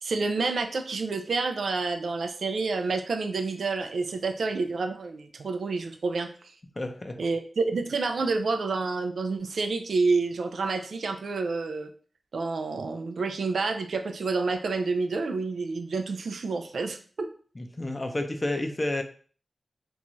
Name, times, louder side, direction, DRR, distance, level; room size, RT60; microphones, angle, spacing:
voice 1, 0.0-6.3 7.2-11.9 12.3-17.3, right 4 dB, 80° right, 7 dB, 0.3 m, -29 dB
voice 2, 6.8-7.2 17.6-19.0, left 1 dB, 30° left, 6 dB, 0.5 m, -30 dB
2.6 x 2.2 x 2.9 m, 0.42 s
cardioid pair, 50°, 0 cm